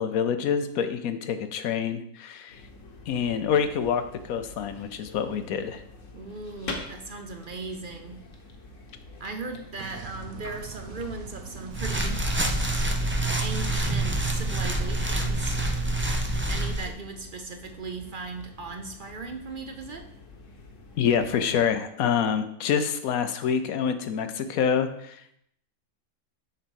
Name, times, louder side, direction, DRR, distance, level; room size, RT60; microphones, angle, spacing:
voice 1, 0.0-2.6 3.1-5.8 21.0-25.2, left 7 dB, 85° left, 9 dB, 1.2 m, -26 dB
sound 1, 2.5-21.7, left 3 dB, 65° left, 1.5 m, -46 dB
voice 2, 6.1-8.3 9.2-12.3 13.4-15.6 16.5-20.1, right 3 dB, 50° right, 6 dB, 0.7 m, -38 dB
sound 2, 9.8-15.0, right 8 dB, 80° right, 1.2 m, -42 dB
sound 3, 11.7-16.9, right 1 dB, 20° right, 0.3 m, -26 dB
7.1 x 4.0 x 6.3 m, 0.72 s
omnidirectional pair, 1.4 m